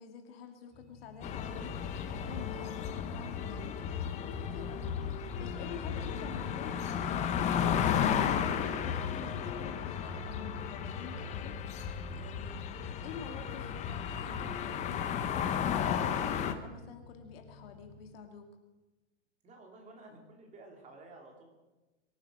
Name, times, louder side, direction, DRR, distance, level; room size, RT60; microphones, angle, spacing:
voice 1, 0.0-11.5 12.1-12.7 13.0-18.5, left 6 dB, 55° left, 5 dB, 2.4 m, -48 dB
sound 1, 0.7-18.1, left 4 dB, ahead, 3.5 m, -55 dB
sound 2, 1.2-16.5, left 8 dB, 20° left, 0.9 m, -34 dB
voice 2, 19.4-21.5, right 2 dB, 20° right, 2 dB, 3.2 m, -53 dB
23.5 x 9.4 x 6.3 m, 1.1 s
hypercardioid pair, 150°, 36 cm